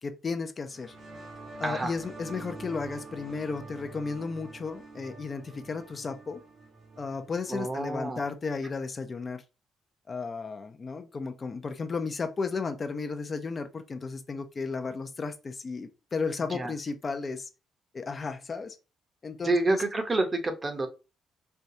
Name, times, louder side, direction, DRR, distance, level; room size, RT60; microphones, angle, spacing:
voice 1, 0.0-0.9 1.6-6.4 7.0-9.4 10.1-17.5 17.9-18.8 19.2-19.8, left 4 dB, 35° left, 0.4 m, -34 dB
sound 1, 0.6-8.0, right 3 dB, 75° right, 1.5 m, -46 dB
voice 2, 1.6-1.9 7.5-8.2 16.5-16.7 19.4-20.9, right 2 dB, 30° right, 0.8 m, -28 dB
4.4 x 2.3 x 2.7 m
cardioid pair, 90°, 0 cm